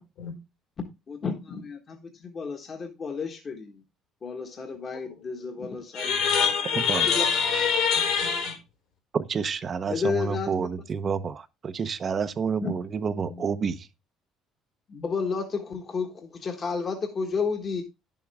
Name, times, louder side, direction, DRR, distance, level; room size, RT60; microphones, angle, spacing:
voice 1, 0.8-3.8 4.2-6.2 7.1-7.2 9.9-10.5 12.6-12.7 13.2-13.5 14.9-17.8, left 5 dB, 35° left, 1.4 m, -32 dB
voice 2, 5.9-8.6, left 6 dB, 75° left, 4.4 m, -24 dB
voice 3, 6.8-7.1 9.1-13.9, right 6 dB, 35° right, 0.7 m, -29 dB
10.0 x 7.2 x 3.5 m
cardioid pair, 110°, 0 cm